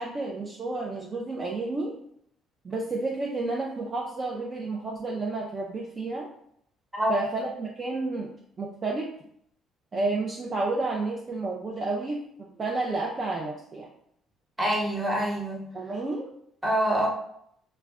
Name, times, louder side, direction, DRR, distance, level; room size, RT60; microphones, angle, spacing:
voice 1, 0.0-1.9 2.6-6.3 7.1-8.3 8.6-9.1 9.9-13.9 15.7-16.3, right 3 dB, 35° right, -2 dB, 0.4 m, -31 dB
voice 2, 6.9-7.3 14.6-15.6 16.6-17.1, equal, 15° right, -2 dB, 0.9 m, -26 dB
2.2 x 2.1 x 3.5 m, 0.69 s
cardioid pair, 85°, 0 cm